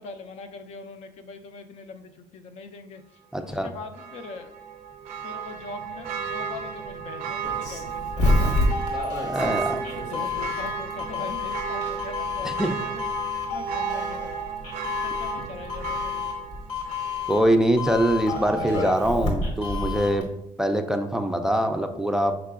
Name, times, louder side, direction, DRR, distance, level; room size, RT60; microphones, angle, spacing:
voice 1, 0.0-3.0 3.4-4.5 5.2-8.5 10.0-13.1 13.5-14.4 14.8-16.4, left 4 dB, 65° left, 8 dB, 0.4 m, -41 dB
voice 2, 3.3-3.7 9.2-9.9 12.4-12.8 17.3-20.3 20.6-22.3, right 1 dB, 5° right, 6 dB, 0.3 m, -23 dB
Church bell, 3.9-17.6 18.0-18.1, right 7 dB, 80° right, 0.4 m, -34 dB
Doorbell, 7.4-20.2, left 2 dB, 85° left, 1.1 m, -29 dB
4.9 x 3.7 x 2.3 m, 0.92 s
cardioid pair, 105°, 12 cm